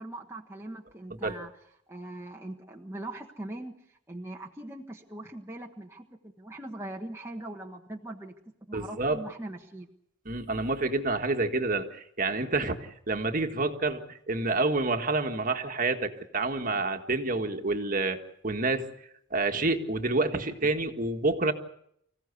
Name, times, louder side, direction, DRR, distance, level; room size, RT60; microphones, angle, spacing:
voice 1, 0.0-1.5 1.9-8.3 8.7-9.9, right 1 dB, 10° right, 0 dB, 1.3 m, -41 dB
voice 2, 8.7-9.2 10.2-18.2 18.4-18.9 19.3-21.5, right 3 dB, 40° right, 5 dB, 1.7 m, -28 dB
25.5 x 16.0 x 8.3 m, 0.72 s
head